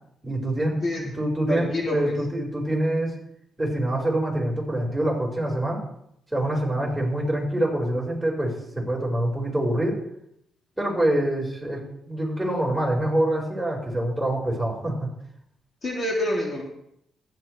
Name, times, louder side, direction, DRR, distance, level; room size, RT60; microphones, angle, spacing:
voice 1, 0.2-3.2 3.6-5.8 6.3-10.0 10.8-15.1, right 1 dB, 5° right, -2 dB, 5.1 m, -25 dB
voice 2, 1.5-2.2 6.8-6.9 15.8-16.6, left 1 dB, 40° left, -2 dB, 2.8 m, -27 dB
15.0 x 11.0 x 3.3 m, 0.75 s
cardioid pair, 90°, 0 cm